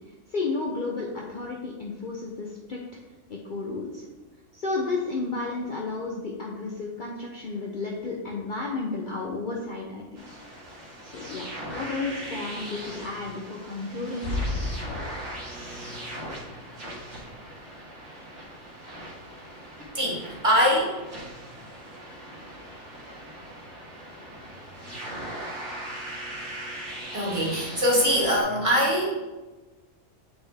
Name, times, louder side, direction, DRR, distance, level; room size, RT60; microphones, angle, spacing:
voice 1, 0.1-2.8 3.3-4.0 4.5-10.4 11.0-14.3 15.6-15.7, left 3 dB, 50° left, -2 dB, 0.7 m, -32 dB
sound 1, 10.2-28.4, right 1 dB, 65° right, 1.8 m, -40 dB
sound 2, 14.0-15.6, left 2 dB, 65° left, 1.2 m, -32 dB
voice 2, 19.9-21.0 27.1-29.1, equal, 25° right, -4 dB, 1.8 m, -23 dB
7.9 x 4.2 x 3.4 m, 1.2 s
omnidirectional pair, 1.3 m